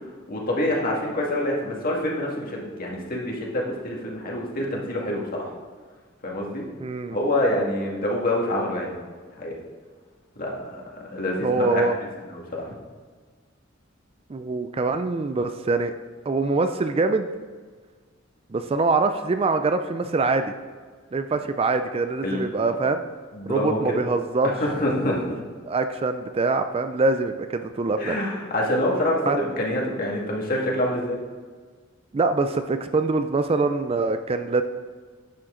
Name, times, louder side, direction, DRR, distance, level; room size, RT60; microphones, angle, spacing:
voice 1, 0.3-5.4 6.2-6.6 7.1-8.9 9.4-9.6 10.4-10.8 11.1-11.8 12.3-12.7 22.2-22.5 23.3-24.1 24.6-25.4 28.0-31.2, left 1 dB, 45° left, -2 dB, 2.0 m, -26 dB
voice 2, 6.8-7.2 11.4-11.9 14.3-15.9 16.3-17.3 18.5-20.5 21.1-23.0 23.5-24.5 25.7-28.2 29.3-29.4 32.1-34.6, right 3 dB, 30° right, 8 dB, 0.4 m, -24 dB
10.5 x 7.5 x 3.8 m, 1.5 s
head